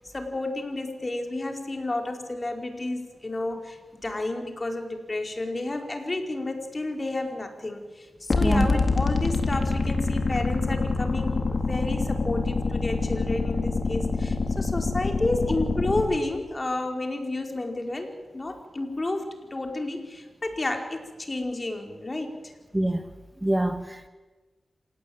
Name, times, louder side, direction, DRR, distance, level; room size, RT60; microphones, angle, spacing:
voice 1, 0.1-22.5, left 2 dB, 35° left, 4 dB, 4.8 m, -31 dB
sound 1, 8.3-16.1, left 3 dB, 55° left, 3.8 m, -26 dB
voice 2, 22.7-23.1 23.4-24.1, right 1 dB, 15° right, 9 dB, 1.7 m, -25 dB
26.5 x 18.0 x 8.9 m, 1.2 s
cardioid pair, 45°, 0 cm